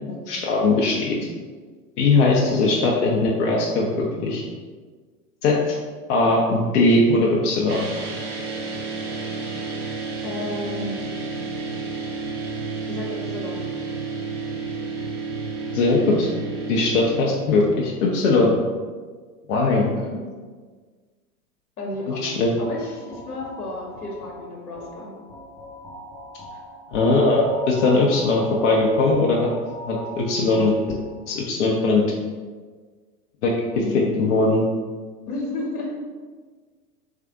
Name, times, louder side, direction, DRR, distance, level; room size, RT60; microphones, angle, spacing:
voice 1, 0.1-1.2 2.0-4.4 5.4-5.7 6.1-7.9 15.7-16.3 16.7-18.5 19.5-19.9 22.2-22.5 26.9-29.5 29.8-30.7 31.3-32.0 33.4-33.5 33.9-34.6, left 3 dB, 55° left, -2 dB, 0.7 m, -20 dB
sound 1, 7.7-17.2, right 4 dB, 80° right, 1.0 m, -31 dB
voice 2, 10.2-11.0 12.9-13.7 19.8-20.4 21.8-25.2 26.5-26.6 33.7-34.6 35.3-35.9, left 2 dB, 75° left, -2 dB, 1.2 m, -32 dB
sound 2, 22.6-31.3, equal, 5° left, 0.7 m, -39 dB
3.6 x 3.3 x 3.6 m, 1.5 s
figure-of-eight pair, 90°, 45 cm